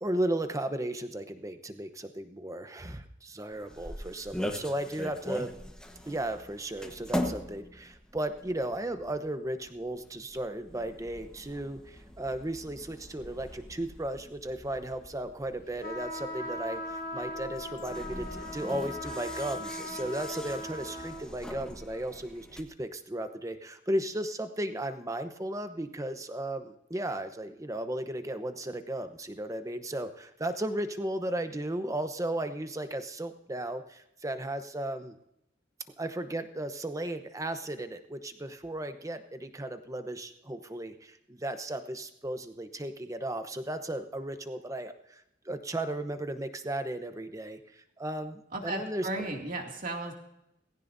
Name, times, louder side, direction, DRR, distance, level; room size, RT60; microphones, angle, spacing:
voice 1, 0.0-5.5 6.1-35.2 36.0-49.1, right 1 dB, 15° right, 9 dB, 0.9 m, -35 dB
sound 1, 3.5-22.6, left 1 dB, 5° left, 1.2 m, -42 dB
sound 2, 15.8-21.3, left 1 dB, 50° left, 1.6 m, -39 dB
voice 2, 48.5-50.1, right 2 dB, 45° right, 1 dB, 2.4 m, -35 dB
19.0 x 16.5 x 2.7 m, 0.80 s
head